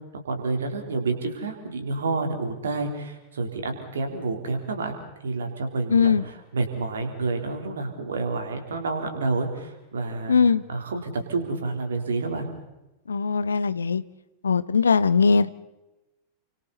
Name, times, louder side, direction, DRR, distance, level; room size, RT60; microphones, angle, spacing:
voice 1, 0.2-4.9 5.2-10.4 10.7-12.5, right 3 dB, 65° right, 5 dB, 3.8 m, -29 dB
voice 2, 5.9-6.2 10.3-10.6 13.1-14.0 14.4-15.5, left 5 dB, 75° left, 16 dB, 0.8 m, -20 dB
30.0 x 25.5 x 4.2 m, 0.99 s
figure-of-eight pair, 90°, 0 cm